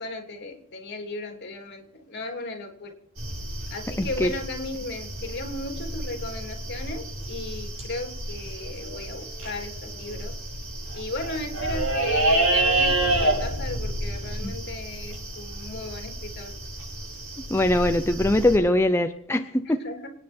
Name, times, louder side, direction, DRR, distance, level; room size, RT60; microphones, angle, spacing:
voice 1, 0.0-2.9 3.7-10.4 10.9-16.5 19.6-20.1, left 2 dB, 55° left, 3.1 m, -35 dB
sound 1, 3.2-18.6, right 2 dB, 85° right, 7.9 m, -29 dB
voice 2, 4.0-4.3 14.4-14.5 17.5-19.8, left 1 dB, 10° left, 0.6 m, -22 dB
26.0 x 9.7 x 4.4 m
head